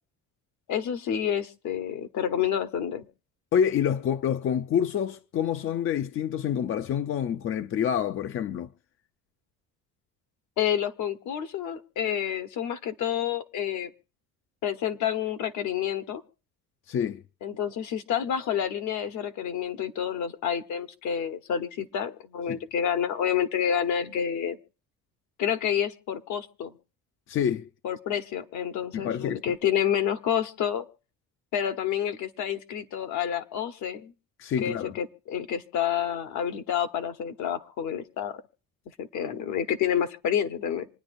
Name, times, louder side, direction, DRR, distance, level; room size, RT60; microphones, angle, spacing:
voice 1, 0.7-3.0 10.6-13.9 14.6-16.2 17.4-24.6 25.4-26.8 27.8-30.8 31.5-34.1 34.6-38.4 39.0-40.9, left 9 dB, 65° left, 1.1 m, -29 dB
voice 2, 3.5-8.7 16.9-17.2 22.5-22.6 27.3-27.7 28.9-29.4 34.4-35.0, left 8 dB, 40° left, 0.5 m, -27 dB
27.0 x 9.7 x 2.6 m
cardioid pair, 125°, 32 cm